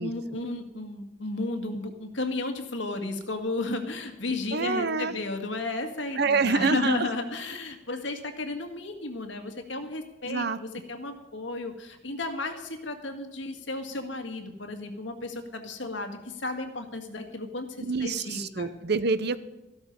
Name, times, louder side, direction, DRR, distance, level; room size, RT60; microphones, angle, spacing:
voice 1, 0.0-17.7 18.0-18.7, left 2 dB, 75° left, 5 dB, 2.0 m, -33 dB
voice 2, 4.5-5.1 6.2-7.1 10.3-10.6 17.8-19.4, right 4 dB, 60° right, 14 dB, 0.8 m, -26 dB
14.5 x 12.0 x 5.4 m, 0.99 s
head